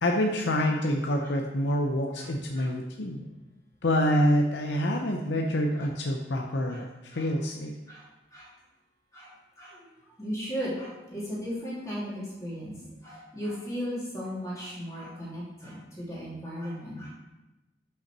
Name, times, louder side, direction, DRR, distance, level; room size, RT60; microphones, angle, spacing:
voice 1, 0.0-3.3 3.8-7.7, equal, 75° left, 1 dB, 0.7 m, -27 dB
voice 2, 9.6-9.9 10.2-12.7 13.0-17.1, equal, 15° left, -7 dB, 2.6 m, -36 dB
5.9 x 5.6 x 6.0 m, 1.0 s
head